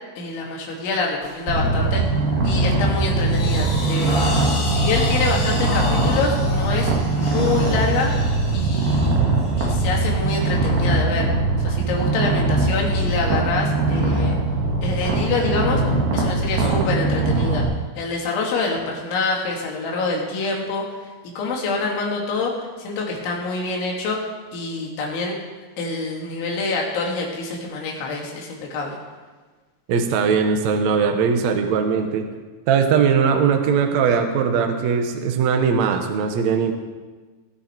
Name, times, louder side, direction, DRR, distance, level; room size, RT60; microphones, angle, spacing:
voice 1, 0.2-2.0 2.4-4.2 4.6-8.1 8.5-9.2 9.6-11.3 11.6-14.4 14.8-15.8 16.1-17.7 18.0-20.9 21.2-24.2 24.5-25.4 25.8-29.0, left 3 dB, 90° left, -1 dB, 4.8 m, -26 dB
sound 1, 1.2-1.5 1.9-2.2 2.7-10.8, left 2 dB, 70° left, 5.8 m, -30 dB
Purr, 1.5-17.6, right 2 dB, 60° right, 3.7 m, -21 dB
voice 2, 29.9-32.3 32.7-36.7, right 6 dB, 85° right, 5 dB, 1.5 m, -20 dB
20.5 x 10.0 x 4.5 m, 1.3 s
omnidirectional pair, 5.2 m